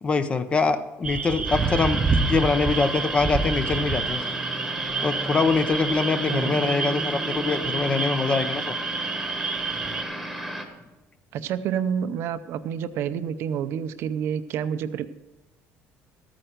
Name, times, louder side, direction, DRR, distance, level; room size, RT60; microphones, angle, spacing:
voice 1, 0.0-2.0 2.3-4.2 5.0-8.7, left 4 dB, 25° left, 11 dB, 0.7 m, -24 dB
sound 1, 1.0-10.0, right 4 dB, 25° right, 0.8 m, -28 dB
sound 2, 1.5-10.7, equal, ahead, 1.4 m, -34 dB
voice 2, 6.3-6.6 11.3-15.1, right 8 dB, 60° right, 11 dB, 0.6 m, -28 dB
13.5 x 9.0 x 5.2 m, 1.1 s
cardioid pair, 155°, 5 cm